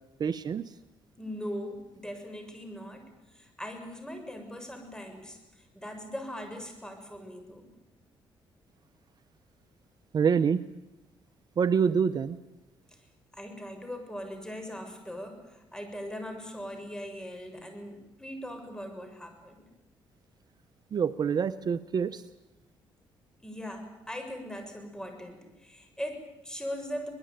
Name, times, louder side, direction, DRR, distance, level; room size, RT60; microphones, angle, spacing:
voice 1, 0.2-0.6 10.1-10.6 11.6-12.4 20.9-22.2, right 6 dB, 50° right, 12 dB, 0.8 m, -26 dB
voice 2, 1.2-7.7 12.9-13.0 13.3-19.7 23.4-27.1, equal, 10° left, 6 dB, 6.7 m, -40 dB
24.5 x 20.0 x 9.2 m, 0.97 s
cardioid pair, 90°, 9 cm